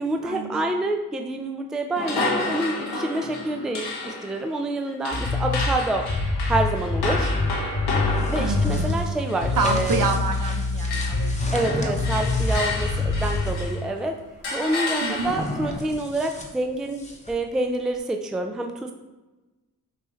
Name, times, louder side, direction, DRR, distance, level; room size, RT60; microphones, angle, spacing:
voice 1, 0.0-6.1 6.5-7.3 8.3-10.1 11.5-14.2 14.5-17.0 17.3-18.9, right 2 dB, ahead, 4 dB, 0.4 m, -27 dB
sound 1, 1.9-10.6 10.8-13.9 14.4-15.6, left 3 dB, 80° left, 1.1 m, -31 dB
sound 2, 5.1-9.0 9.4-11.6 11.9-13.4, left 3 dB, 35° left, 1.0 m, -25 dB
sound 3, 8.1-13.7 15.2-17.4, left 1 dB, 20° left, 0.9 m, -35 dB
voice 2, 8.4-9.0 9.6-11.9 15.0-15.4, right 4 dB, 55° right, 5 dB, 0.7 m, -28 dB
5.5 x 2.7 x 3.1 m, 1.1 s
cardioid pair, 50°, 39 cm